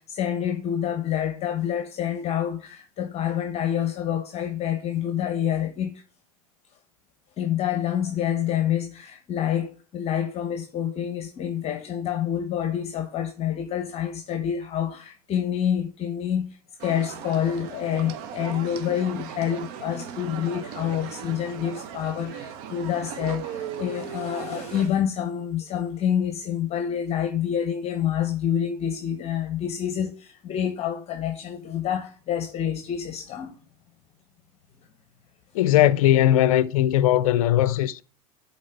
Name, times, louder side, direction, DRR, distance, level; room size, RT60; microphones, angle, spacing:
voice 1, 0.0-6.0 7.4-33.5, left 9 dB, 35° left, 0.9 m, -27 dB
sound 1, 16.8-24.9, right 9 dB, 55° right, 0.9 m, -37 dB
voice 2, 35.5-38.0, left 13 dB, 65° left, 0.4 m, -19 dB
11.0 x 4.1 x 3.3 m
hypercardioid pair, 90°, 19 cm